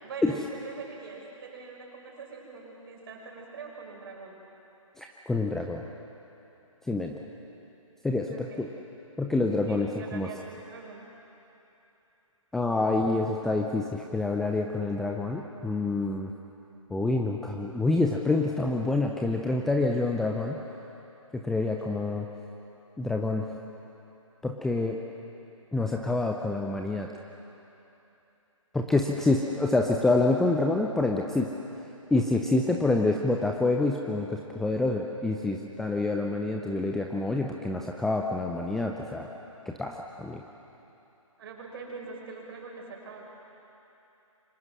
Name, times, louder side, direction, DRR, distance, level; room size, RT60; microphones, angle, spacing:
voice 1, 0.0-4.4 8.3-8.7 9.3-11.1 33.1-33.3 41.4-43.2, right 4 dB, 40° right, -1 dB, 6.1 m, -43 dB
voice 2, 5.0-5.8 6.9-7.1 8.0-8.7 9.2-9.9 10.1-10.3 12.5-16.3 16.9-20.6 21.4-22.3 23.0-23.5 24.4-25.0 25.7-27.1 28.7-31.5 32.1-39.3 39.7-40.4, left 2 dB, ahead, 1 dB, 0.6 m, -27 dB
27.5 x 25.0 x 6.3 m, 3.0 s
figure-of-eight pair, 140°, 18 cm